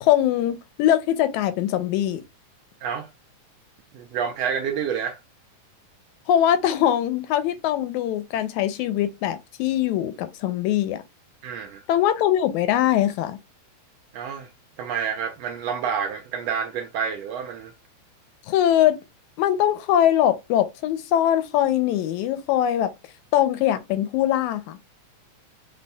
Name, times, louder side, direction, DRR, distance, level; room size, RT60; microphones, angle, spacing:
voice 1, 0.0-2.2 6.3-11.0 11.9-13.4 18.5-19.0 19.4-22.9 23.3-24.8, left 11 dB, 80° left, 1.9 m, -22 dB
voice 2, 3.9-5.2 11.4-11.8 14.1-14.5 14.8-17.7, right 7 dB, 75° right, 1.5 m, -28 dB
6.8 x 3.4 x 2.2 m
omnidirectional pair, 3.5 m